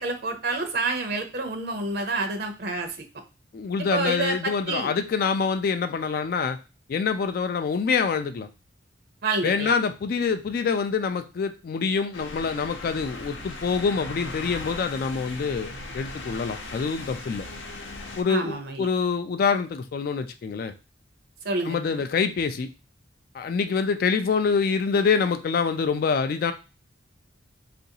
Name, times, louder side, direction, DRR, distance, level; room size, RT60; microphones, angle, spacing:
voice 1, 0.0-3.0 3.9-4.9 9.2-9.7 18.3-18.9 21.4-22.0, right 3 dB, 55° right, 6 dB, 0.6 m, -28 dB
voice 2, 3.5-6.6 6.9-8.5 9.4-17.5 18.2-20.7 21.6-22.7 23.3-26.5, left 5 dB, 50° left, 9 dB, 0.3 m, -26 dB
sound 1, 12.1-18.2, left 2 dB, 80° left, 0.7 m, -38 dB
3.8 x 2.5 x 2.7 m, 0.31 s
head